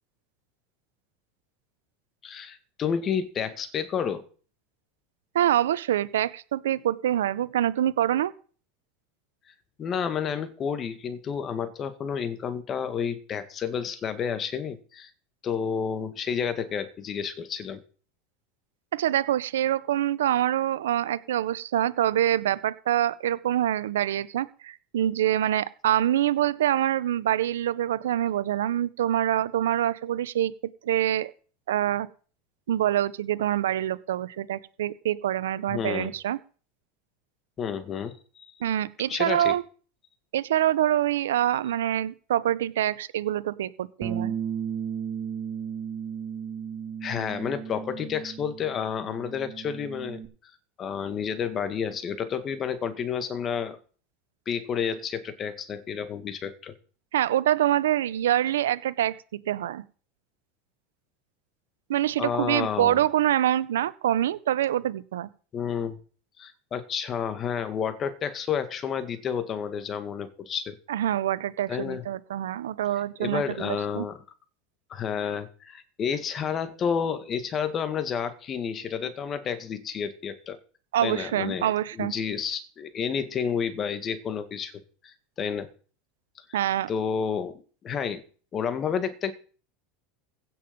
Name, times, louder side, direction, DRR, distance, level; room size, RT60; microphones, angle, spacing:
voice 1, 2.2-4.2 9.8-15.1 15.4-17.8 35.7-36.1 37.6-38.5 39.1-39.5 47.0-50.2 50.8-53.8 54.5-56.7 62.2-63.0 65.5-66.0 66.4-70.8 71.7-72.0 73.2-74.2 74.9-80.6 81.0-81.7 82.0-84.7 85.0-85.7 86.9-88.2 88.5-89.3, left 7 dB, 35° left, 11 dB, 1.9 m, -30 dB
voice 2, 5.3-8.3 18.9-30.5 30.8-31.3 31.7-32.1 32.7-36.4 38.6-39.6 40.3-44.3 57.1-59.2 59.5-59.8 61.9-65.3 70.9-74.1 80.9-82.1 86.5-86.9, right 12 dB, 90° right, 17 dB, 0.7 m, -25 dB
Bass guitar, 44.0-50.3, right 8 dB, 35° right, 2.1 m, -35 dB
16.0 x 7.0 x 5.3 m, 0.41 s
supercardioid pair, 105°, 0 cm